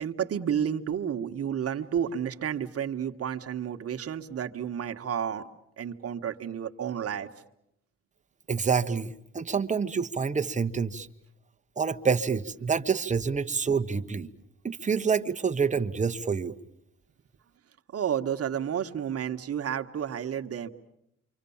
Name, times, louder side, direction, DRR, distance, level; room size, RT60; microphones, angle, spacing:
voice 1, 0.0-5.5 5.8-7.3 17.9-20.7, right 8 dB, 50° right, 6 dB, 1.5 m, -31 dB
voice 2, 8.5-11.1 11.8-14.3 14.6-16.6, right 5 dB, 25° right, 7 dB, 1.1 m, -27 dB
28.5 x 25.0 x 7.2 m, 0.80 s
cardioid pair, 90°, 30 cm